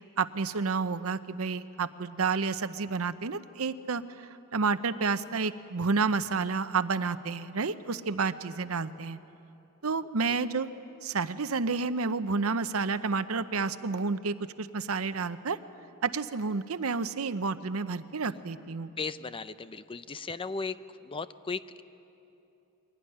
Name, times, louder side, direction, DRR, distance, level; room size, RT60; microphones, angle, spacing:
voice 1, 0.2-9.2 9.8-10.7 11.0-15.6 16.0-18.9, right 4 dB, 80° right, 13 dB, 0.8 m, -30 dB
voice 2, 19.0-20.8 21.0-21.8, left 4 dB, 25° left, 13 dB, 0.5 m, -36 dB
23.0 x 17.5 x 10.0 m, 2.9 s
head